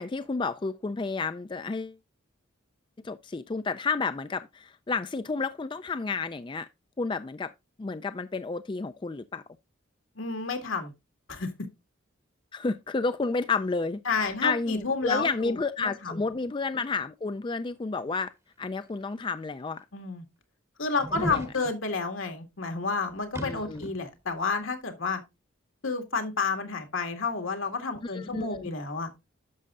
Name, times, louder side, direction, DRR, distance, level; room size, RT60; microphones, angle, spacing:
voice 1, 0.0-2.0 3.0-6.7 7.0-7.5 7.8-9.4 12.5-18.3 18.6-19.8 21.1-21.4 23.4-23.9 28.0-28.7, left 4 dB, 25° left, 0.3 m, -31 dB
voice 2, 10.2-10.9 11.3-11.5 14.1-16.2 19.9-20.2 20.8-25.2 25.8-29.1, left 4 dB, 80° left, 2.0 m, -30 dB
sound 1, 19.0-19.1 19.8-19.9 21.0-21.5 23.3-24.0 24.3-24.4, right 1 dB, 15° right, 0.8 m, -36 dB
11.0 x 6.5 x 2.4 m
head